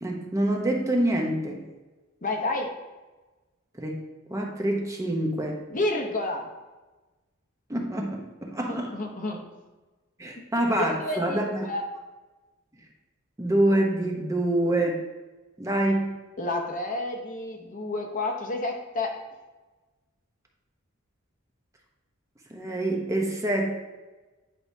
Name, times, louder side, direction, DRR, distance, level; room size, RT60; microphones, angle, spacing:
voice 1, 0.0-1.6 3.8-4.0 4.3-5.6 7.7-8.9 10.2-11.7 13.4-15.0 15.6-16.1 22.5-23.7, right 1 dB, 15° right, 0 dB, 0.8 m, -26 dB
voice 2, 2.2-2.7 5.7-6.5 8.7-9.5 10.8-11.8 16.4-19.2, left 2 dB, 40° left, 3 dB, 0.8 m, -30 dB
10.0 x 4.8 x 2.7 m, 1.2 s
head